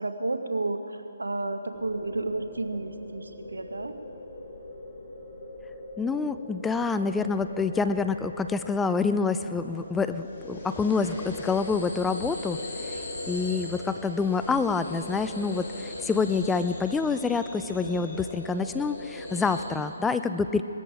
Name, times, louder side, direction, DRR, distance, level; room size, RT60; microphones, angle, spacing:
voice 1, 0.0-3.9, right 2 dB, 90° right, 8 dB, 1.1 m, -31 dB
sound 1, 1.7-19.6, left 2 dB, 45° left, 3.7 m, -40 dB
voice 2, 6.0-12.6 12.9-13.0 13.3-20.6, left 4 dB, 10° left, 10 dB, 0.4 m, -27 dB
19.5 x 13.5 x 4.9 m, 2.9 s
figure-of-eight pair, 145°, 0 cm